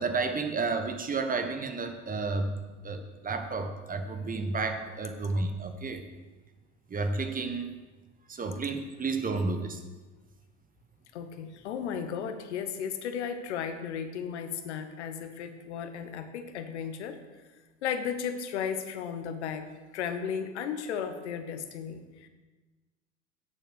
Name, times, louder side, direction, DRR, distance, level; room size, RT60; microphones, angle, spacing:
voice 1, 0.0-2.5 2.8-6.0 6.9-7.7 8.3-9.8, right 3 dB, 25° right, 7 dB, 1.3 m, -31 dB
voice 2, 11.1-17.2 17.8-19.6 19.9-22.3, left 7 dB, 75° left, 8 dB, 1.2 m, -35 dB
9.3 x 7.4 x 6.4 m, 1.3 s
hypercardioid pair, 80°, 34 cm